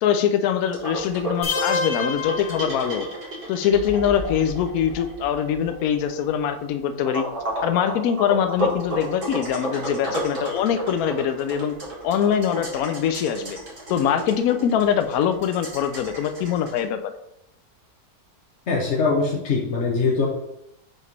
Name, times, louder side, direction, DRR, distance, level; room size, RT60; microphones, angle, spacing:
voice 1, 0.0-3.1 3.5-7.3 7.6-11.7 12.0-13.6 13.9-17.1, left 8 dB, 75° left, 8 dB, 1.0 m, -23 dB
sound 1, 0.7-16.8, right 1 dB, 35° right, 1.8 m, -32 dB
sound 2, 1.4-3.4, left 4 dB, 30° left, 0.5 m, -28 dB
voice 2, 18.7-20.3, left 4 dB, 55° left, -3 dB, 1.1 m, -22 dB
5.7 x 3.1 x 5.3 m, 0.81 s
omnidirectional pair, 1.6 m